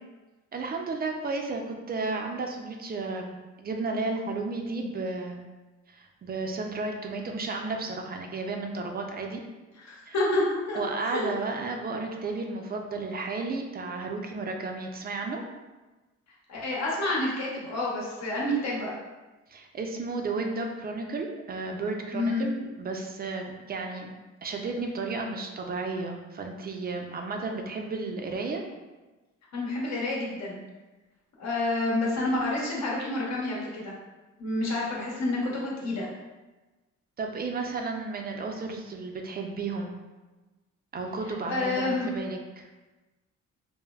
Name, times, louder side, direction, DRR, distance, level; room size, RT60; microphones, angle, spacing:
voice 1, 0.5-5.4 5.9-9.4 10.1-10.2 10.7-15.4 19.5-24.1 24.4-28.6 37.2-40.0 40.9-42.7, right 3 dB, 30° right, 2 dB, 0.4 m, -33 dB
voice 2, 9.8-11.3 16.5-18.9 22.1-22.4 29.5-30.6 31.4-33.9 34.4-36.1 41.4-42.1, left 2 dB, 60° left, -4 dB, 0.9 m, -29 dB
3.2 x 2.1 x 2.3 m, 1.2 s
cardioid pair, 90°, 30 cm